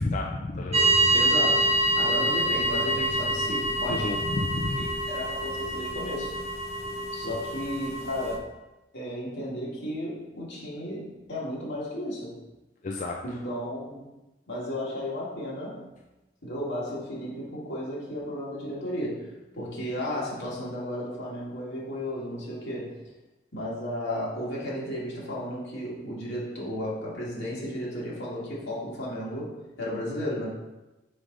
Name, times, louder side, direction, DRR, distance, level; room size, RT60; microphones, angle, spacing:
voice 1, 0.0-1.0 3.9-4.9 7.2-7.4 12.8-13.2, left 2 dB, 40° left, 0 dB, 0.4 m, -30 dB
sound 1, 0.7-8.4, right 1 dB, 35° right, 0.8 m, -26 dB
voice 2, 1.1-4.2 4.8-6.4 7.1-8.5 8.9-12.4 13.2-14.0 14.5-15.8 16.4-19.2 19.5-23.0 23.5-29.5 29.8-30.5, left 1 dB, 85° left, -6 dB, 2.2 m, -34 dB
5.1 x 4.9 x 3.9 m, 1.1 s
head